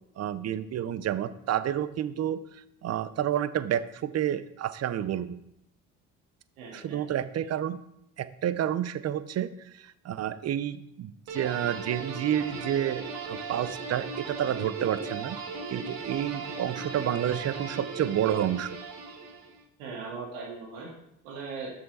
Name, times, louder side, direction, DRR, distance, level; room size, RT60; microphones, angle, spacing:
voice 1, 0.2-2.4 2.8-5.4 6.7-7.8 8.2-9.5 9.7-15.4 15.7-18.7, right 10 dB, 40° right, 14 dB, 0.7 m, -29 dB
voice 2, 6.6-7.0 19.8-20.9 21.2-21.7, right 4 dB, 85° right, -4 dB, 2.2 m, -39 dB
sound 1, 11.3-19.6, right 4 dB, 65° right, 2.0 m, -37 dB
6.9 x 6.2 x 4.2 m, 0.79 s
supercardioid pair, 70°, 38 cm